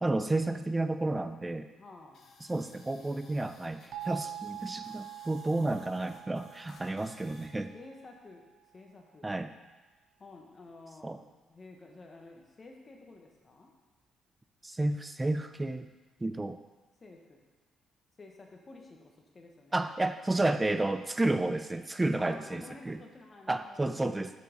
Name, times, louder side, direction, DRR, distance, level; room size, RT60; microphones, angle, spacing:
voice 1, 0.0-1.7 2.5-7.7 9.2-9.5 11.0-11.2 14.6-15.9 16.2-16.6 19.7-23.0 23.5-24.3, right 2 dB, 15° right, 10 dB, 0.4 m, -31 dB
voice 2, 1.8-2.3 7.7-8.5 8.7-9.3 10.2-11.2 11.5-13.7 17.0-17.4 18.2-19.9 22.2-24.0, left 3 dB, 35° left, 1 dB, 1.2 m, -51 dB
sound 1, 2.1-7.5, left 4 dB, 65° left, 1.1 m, -58 dB
sound 2, 3.9-8.6, right 12 dB, 65° right, 1.0 m, -45 dB
6.5 x 5.5 x 5.1 m, 1.2 s
cardioid pair, 90°, 0 cm